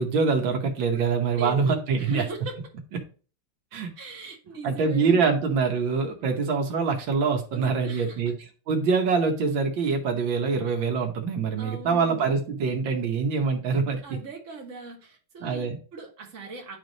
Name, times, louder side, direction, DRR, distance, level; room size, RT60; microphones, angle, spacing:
voice 1, 0.0-2.2 3.7-3.9 4.6-8.3 8.7-14.2 15.4-15.8, right 5 dB, 85° right, 3 dB, 1.8 m, -24 dB
voice 2, 1.4-2.6 4.0-5.3 6.2-6.4 7.5-8.2 11.6-12.3 14.0-16.8, right 3 dB, 45° right, 0 dB, 1.8 m, -39 dB
9.7 x 3.4 x 3.9 m, 0.38 s
omnidirectional pair, 2.0 m